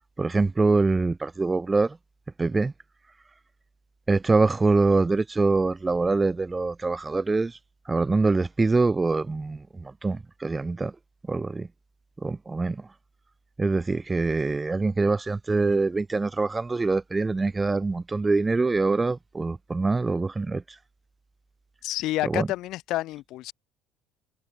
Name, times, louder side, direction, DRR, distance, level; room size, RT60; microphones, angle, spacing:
voice 1, 0.2-2.0 2.4-2.7 4.1-7.6 7.9-10.9 11.3-11.7 12.2-12.9 13.6-20.6 22.2-22.5, right 3 dB, 20° right, 6.9 m, -24 dB
voice 2, 21.8-23.5, left 16 dB, 65° left, 3.7 m, -29 dB
hypercardioid pair, 70°, 0 cm